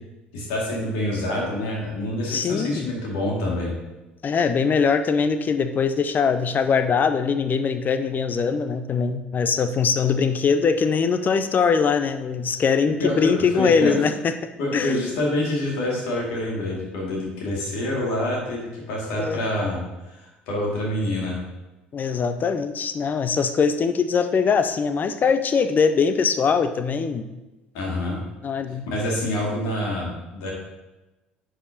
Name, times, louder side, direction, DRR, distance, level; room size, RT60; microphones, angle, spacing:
voice 1, 0.3-3.7 13.0-13.9 14.6-19.8 20.1-21.4 27.7-28.2 28.8-30.5, left 1 dB, 65° left, -2 dB, 2.0 m, -26 dB
voice 2, 2.3-2.9 4.2-14.3 14.7-15.1 19.2-19.5 21.9-27.3 28.4-28.9, left 5 dB, 35° left, 10 dB, 0.5 m, -22 dB
9.9 x 5.0 x 2.8 m, 1.0 s
figure-of-eight pair, 60°, 5 cm